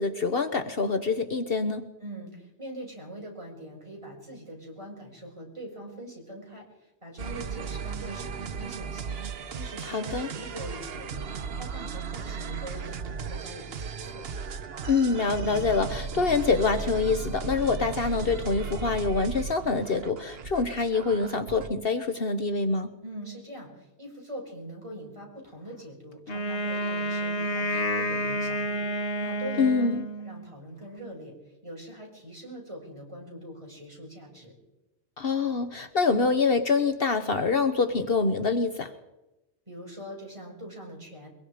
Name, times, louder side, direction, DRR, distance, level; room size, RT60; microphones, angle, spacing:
voice 1, 0.0-1.9 9.8-10.3 14.8-22.9 29.6-30.0 35.2-38.9, left 4 dB, 55° left, 9 dB, 1.2 m, -25 dB
voice 2, 2.0-14.3 23.0-29.9 30.2-34.5 39.7-41.3, right 1 dB, 25° right, -1 dB, 6.7 m, -43 dB
sound 1, 7.2-21.7, right 5 dB, 60° right, 1.1 m, -36 dB
Wind instrument woodwind instrument, 26.3-30.5, equal, 70° left, 1.7 m, -30 dB
23.5 x 22.0 x 5.0 m, 0.97 s
omnidirectional pair, 1.2 m